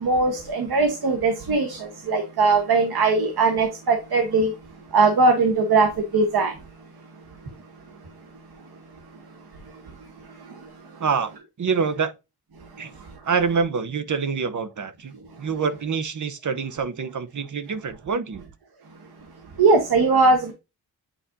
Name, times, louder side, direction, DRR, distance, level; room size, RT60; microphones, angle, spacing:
voice 1, 0.0-1.8 2.1-4.5 4.9-6.5 19.6-20.5, right 3 dB, 90° right, 1.5 m, -20 dB
voice 2, 11.0-11.3 11.6-12.1 12.8-12.9 13.2-15.1 15.4-18.4, right 5 dB, 55° right, 0.9 m, -26 dB
9.1 x 4.2 x 2.7 m
wide cardioid pair, 120°, 36 cm